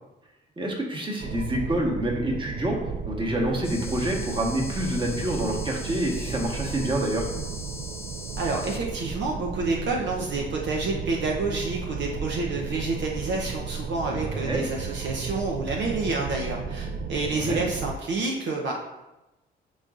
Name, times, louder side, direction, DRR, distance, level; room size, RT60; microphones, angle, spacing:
voice 1, 0.6-2.8 3.1-7.2 14.1-14.6 17.3-17.6, right 1 dB, 25° right, 0 dB, 1.4 m, -27 dB
sound 1, 1.2-18.0, right 5 dB, 45° right, 0.4 m, -34 dB
sound 2, 3.6-8.8, left 2 dB, 10° left, 1.2 m, -41 dB
voice 2, 8.4-18.7, right 3 dB, 65° right, -1 dB, 0.8 m, -28 dB
9.5 x 4.0 x 2.5 m, 0.99 s
cardioid pair, 90°, 20 cm